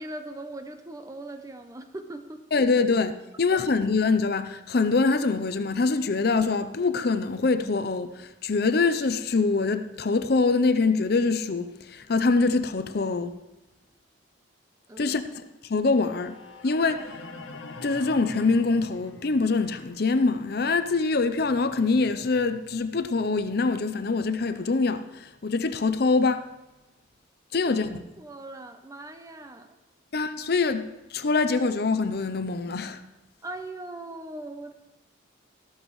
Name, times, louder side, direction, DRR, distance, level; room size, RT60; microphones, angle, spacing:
voice 1, 0.0-2.4 3.5-3.7 14.9-15.3 27.5-29.8 33.4-34.7, right 2 dB, 15° right, 0.6 m, -40 dB
voice 2, 2.5-3.1 3.4-13.3 15.0-15.2 15.6-16.4 16.6-17.1 17.8-26.4 27.5-28.0 30.1-33.0, left 4 dB, 50° left, 0.6 m, -24 dB
sound 1, 15.8-23.9, left 3 dB, 80° left, 1.1 m, -46 dB
13.5 x 13.0 x 3.2 m
head